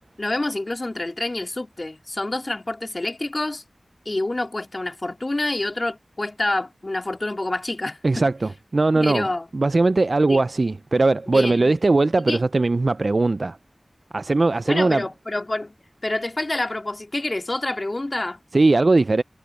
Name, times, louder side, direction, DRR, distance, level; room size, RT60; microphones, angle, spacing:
voice 1, 0.2-3.6 4.1-8.3 9.0-9.5 10.3-10.4 11.3-11.7 12.2-12.4 14.7-15.7 16.0-18.4, left 2 dB, 45° left, 2.3 m, -27 dB
voice 2, 8.0-9.3 9.5-13.6 14.1-15.0 18.5-19.2, right 3 dB, 65° right, 0.3 m, -19 dB
wide cardioid pair, 40°, 0 cm